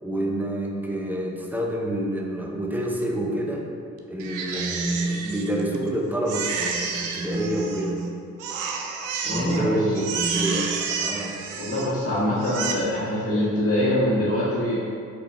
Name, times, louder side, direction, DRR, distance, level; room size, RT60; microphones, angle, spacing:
voice 1, 0.0-3.7 4.1-8.1 9.3-11.4, right 1 dB, 5° right, 0 dB, 0.5 m, -27 dB
Crying sobbing, 4.2-5.9 6.3-8.1 8.4-9.6 9.9-12.0 12.4-12.7, right 5 dB, 90° right, 0.5 m, -30 dB
voice 2, 9.2-10.0 11.6-14.8, left 1 dB, 50° left, -10 dB, 1.4 m, -24 dB
4.7 x 4.1 x 2.4 m, 2.3 s
cardioid pair, 90°, 30 cm